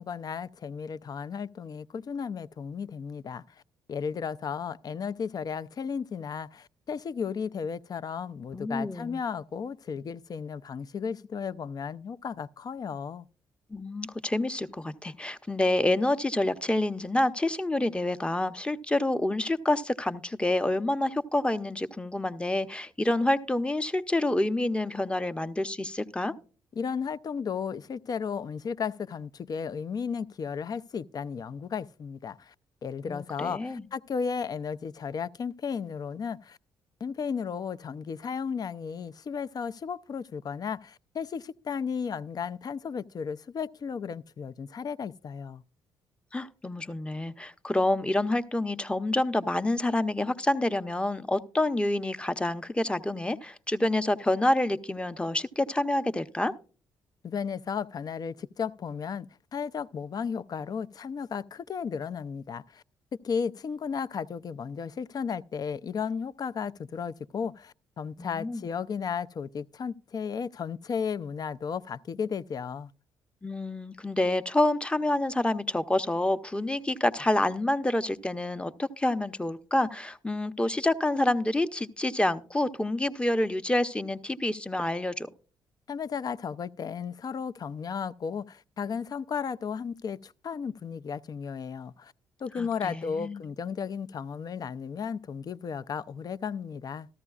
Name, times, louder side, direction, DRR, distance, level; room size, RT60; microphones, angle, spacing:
voice 1, 0.0-3.6 3.9-13.3 26.7-32.5 32.8-36.6 37.0-45.6 57.2-62.8 63.2-72.9 85.9-92.1 92.4-97.1, left 6 dB, 45° left, 0.4 m, -34 dB
voice 2, 8.5-9.2 13.7-26.3 33.1-33.9 46.3-56.5 68.2-68.7 73.4-85.3 92.6-93.4, left 1 dB, 10° left, 0.7 m, -28 dB
13.5 x 13.5 x 2.4 m
hypercardioid pair, 55°, 9 cm